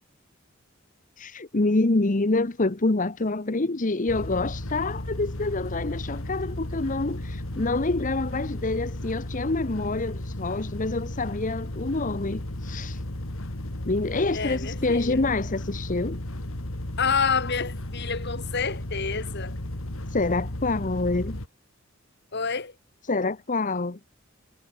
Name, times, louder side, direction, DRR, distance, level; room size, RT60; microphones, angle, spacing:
voice 1, 1.2-13.0 13.9-16.2 20.1-21.4 23.0-24.0, left 2 dB, 40° left, 1.0 m, -27 dB
sound 1, 4.1-21.5, left 1 dB, 90° left, 2.7 m, -34 dB
voice 2, 14.3-15.2 17.0-19.6 22.3-22.8, left 5 dB, 55° left, 2.3 m, -28 dB
head